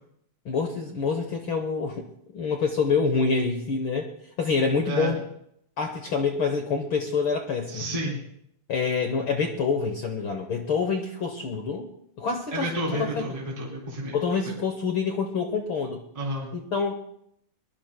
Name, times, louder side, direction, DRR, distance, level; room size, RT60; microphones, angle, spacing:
voice 1, 0.4-2.0 2.3-4.1 4.4-5.2 5.8-7.8 8.7-11.9 12.2-13.2 14.1-16.0 16.5-16.9, left 5 dB, 65° left, 4 dB, 1.3 m, -26 dB
voice 2, 7.7-8.2 12.5-14.2 16.1-16.5, right 1 dB, 10° right, -4 dB, 3.1 m, -30 dB
23.0 x 21.0 x 2.2 m, 0.73 s
omnidirectional pair, 3.6 m